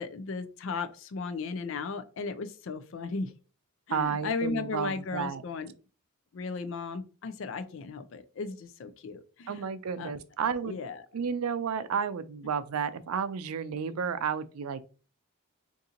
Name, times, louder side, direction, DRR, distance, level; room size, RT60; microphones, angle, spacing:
voice 1, 0.0-3.3 3.9-5.7 6.3-9.6 10.0-10.1 10.6-11.0, left 4 dB, 60° left, 0.4 m, -36 dB
voice 2, 3.9-5.4 9.5-10.8 11.1-14.8, right 6 dB, 85° right, 0.4 m, -32 dB
2.8 x 2.6 x 3.7 m
head